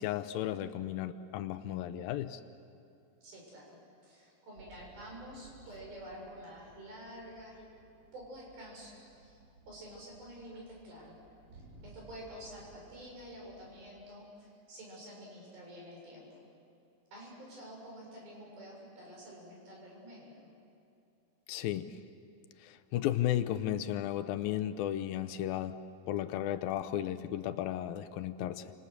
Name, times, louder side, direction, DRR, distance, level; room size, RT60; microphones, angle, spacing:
voice 1, 0.0-2.4 21.5-22.0 22.6-25.8 26.1-28.7, left 12 dB, 85° left, 11 dB, 2.6 m, -34 dB
voice 2, 3.2-3.8 4.0-7.7 8.1-9.4 9.7-11.2 11.5-16.4 17.1-20.5, equal, 85° right, -2 dB, 8.9 m, -49 dB
sound 1, 4.6-13.9, right 2 dB, 45° right, 5.6 m, -59 dB
30.0 x 27.5 x 6.7 m, 2.6 s
omnidirectional pair, 4.1 m